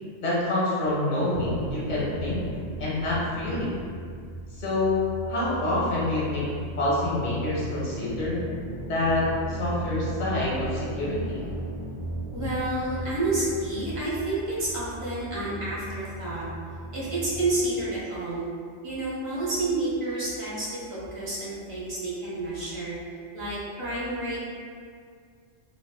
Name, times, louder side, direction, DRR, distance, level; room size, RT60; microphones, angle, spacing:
voice 1, 0.2-2.4 2.8-3.7 4.5-8.4 8.9-11.4, left 2 dB, 45° left, -7 dB, 0.7 m, -27 dB
sound 1, 1.3-17.6, right 2 dB, 60° right, 0.8 m, -37 dB
voice 2, 12.3-16.5 16.9-18.4 18.8-23.0 23.3-24.4, right 2 dB, 40° right, -8 dB, 0.5 m, -29 dB
2.4 x 2.4 x 2.2 m, 2.2 s
omnidirectional pair, 1.3 m